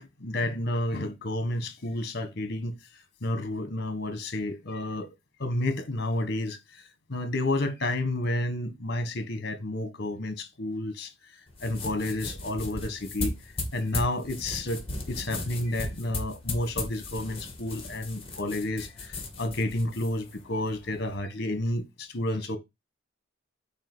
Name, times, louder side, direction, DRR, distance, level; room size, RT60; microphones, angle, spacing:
voice 1, 0.0-2.8 3.2-5.1 5.4-6.8 7.1-11.1 11.6-13.3 13.7-22.6, left 1 dB, 55° left, 1.6 m, -31 dB
sound 1, 11.5-21.2, left 2 dB, 30° left, 2.3 m, -37 dB
8.8 x 3.0 x 6.2 m
head